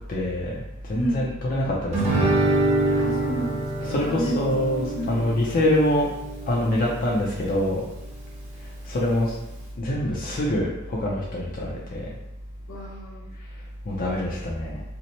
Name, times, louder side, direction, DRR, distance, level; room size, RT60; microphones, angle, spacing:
voice 1, 0.1-0.6 0.9-2.4 2.9-3.0 3.8-6.1 6.5-7.8 8.6-9.4 9.8-12.1 13.8-14.8, left 1 dB, 45° left, -4 dB, 0.5 m, -25 dB
voice 2, 0.9-1.3 2.9-4.4 4.7-5.3 12.7-13.2, right 1 dB, 70° left, -3 dB, 0.9 m, -31 dB
Guitar, 1.9-7.0, right 2 dB, 35° right, 1.0 m, -25 dB
2.8 x 2.1 x 4.0 m, 0.93 s
head